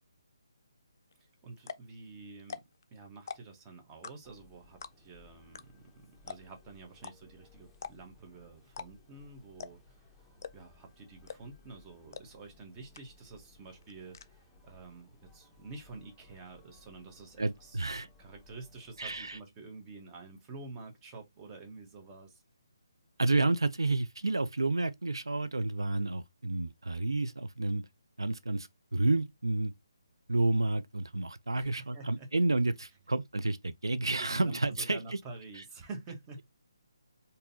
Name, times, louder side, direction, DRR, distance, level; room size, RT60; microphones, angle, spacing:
sound 1, 1.1-1.2 1.6-1.9 2.4-2.8 3.2-3.6 4.0-4.4 4.8-5.2 5.5-5.6 5.9-6.0 6.3-6.6 7.0-7.1 7.7-8.2 8.7-9.2 9.6-9.9 10.4-10.8 11.3-11.6 12.1-12.2 12.6-12.7 12.9-13.4 13.6-14.3, left 6 dB, 45° left, 0.4 m, -43 dB
voice 1, 1.2-2.6 2.9-10.1 10.5-17.8 18.2-22.4 31.5-32.3 34.2-36.5, right 3 dB, 20° right, 1.0 m, -49 dB
sound 2, 4.2-19.4, left 3 dB, 5° left, 0.8 m, -61 dB
voice 2, 17.4-18.1 19.0-19.4 23.2-27.8 28.2-29.7 30.3-35.2 35.6-35.7, right 2 dB, 90° right, 0.4 m, -30 dB
3.7 x 2.7 x 2.6 m
figure-of-eight pair, 150°, 2 cm